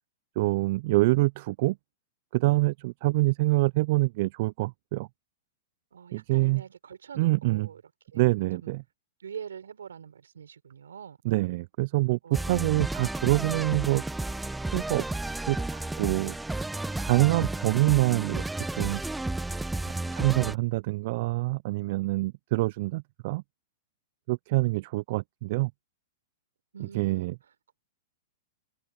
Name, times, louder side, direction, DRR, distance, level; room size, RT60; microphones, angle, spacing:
voice 1, 0.4-1.8 2.3-5.1 6.1-6.6 7.2-7.7 8.1-8.8 11.2-12.2 12.5-14.0 14.7-15.6 16.0-16.4 17.0-18.4 18.7-19.0 20.1-23.4 24.3-25.7 26.8-27.3, right 21 dB, 55° right, 0.4 m, -25 dB
voice 2, 5.9-7.8 8.1-8.2 8.6-8.7 9.2-11.2 12.2-12.7 26.7-27.3, right 7 dB, 80° right, 6.4 m, -44 dB
sound 1, 12.3-20.5, right 2 dB, 5° right, 1.0 m, -32 dB
hypercardioid pair, 115°, 0 cm